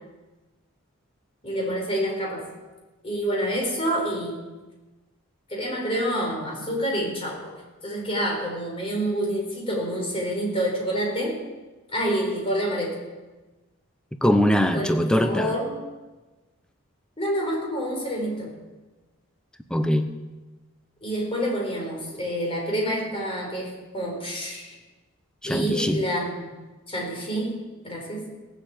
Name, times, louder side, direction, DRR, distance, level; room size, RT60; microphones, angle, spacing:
voice 1, 1.4-2.5 3.0-4.4 5.5-11.4 11.9-13.0 14.7-14.8 15.2-15.9 17.2-18.5 21.0-24.8 25.5-26.5 26.9-27.5 27.8-28.3, equal, 25° left, -1 dB, 4.6 m, -28 dB
voice 2, 14.2-15.5 19.7-20.1 25.4-26.0, equal, 5° left, 7 dB, 0.7 m, -21 dB
17.5 x 7.6 x 8.4 m, 1.2 s
head